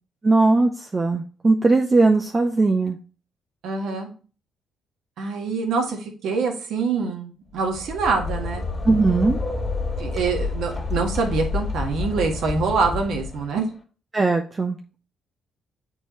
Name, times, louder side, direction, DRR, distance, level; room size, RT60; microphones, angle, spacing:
voice 1, 0.2-3.0 8.8-9.4 14.1-14.8, right 3 dB, 25° right, 3 dB, 0.6 m, -19 dB
voice 2, 3.6-4.1 5.2-8.6 10.0-13.7, right 4 dB, 75° right, 2 dB, 1.6 m, -25 dB
sound 1, 7.6-13.6, left 3 dB, 30° left, 2.1 m, -29 dB
7.5 x 4.6 x 3.1 m, 0.38 s
cardioid pair, 90°, 0 cm